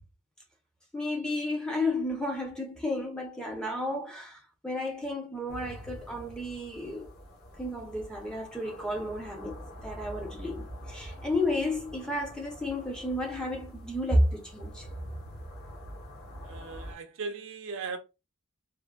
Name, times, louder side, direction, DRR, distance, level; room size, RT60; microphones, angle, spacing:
voice 1, 0.9-7.1 7.6-14.9, left 1 dB, 5° left, 0.5 m, -32 dB
sound 1, 5.5-16.9, equal, 45° left, 1.1 m, -45 dB
voice 2, 16.4-18.0, right 4 dB, 60° right, 0.5 m, -38 dB
3.3 x 2.0 x 2.2 m
head